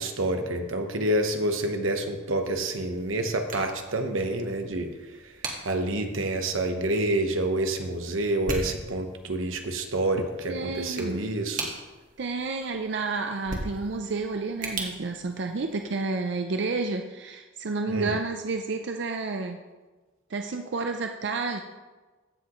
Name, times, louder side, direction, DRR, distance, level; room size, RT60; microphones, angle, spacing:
voice 1, 0.0-4.9 5.6-11.6 17.9-18.1, right 1 dB, 90° right, 5 dB, 1.0 m, -28 dB
sound 1, 2.4-16.1, right 2 dB, 45° right, 1.6 m, -41 dB
voice 2, 10.5-11.3 12.2-19.6 20.3-21.6, right 3 dB, 60° right, 5 dB, 0.5 m, -30 dB
15.5 x 6.2 x 3.1 m, 1.3 s
head